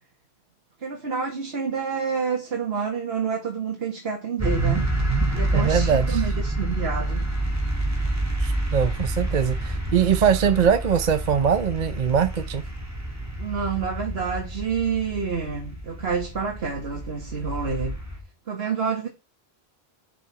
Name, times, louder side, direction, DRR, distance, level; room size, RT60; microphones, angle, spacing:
voice 1, 0.8-5.0 5.3-7.3 13.4-18.0 18.5-19.1, right 5 dB, 70° right, 1.8 m, -28 dB
sound 1, 4.4-18.2, right 2 dB, 15° right, 2.3 m, -28 dB
voice 2, 5.5-6.2 8.4-12.7, right 7 dB, 45° right, 0.7 m, -22 dB
8.3 x 7.1 x 4.8 m
omnidirectional pair, 1.1 m